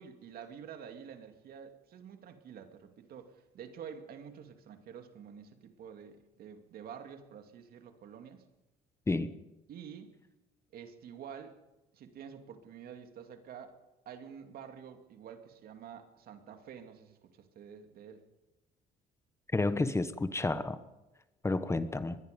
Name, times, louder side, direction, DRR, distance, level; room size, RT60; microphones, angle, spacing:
voice 1, 0.0-8.5 9.7-10.2 10.7-11.6 11.9-13.8 14.1-18.2, right 7 dB, 65° right, 2.6 m, -48 dB
voice 2, 19.5-20.8 21.4-22.2, left 2 dB, 15° left, 1.2 m, -30 dB
24.0 x 21.0 x 5.3 m
cardioid pair, 110°, 17 cm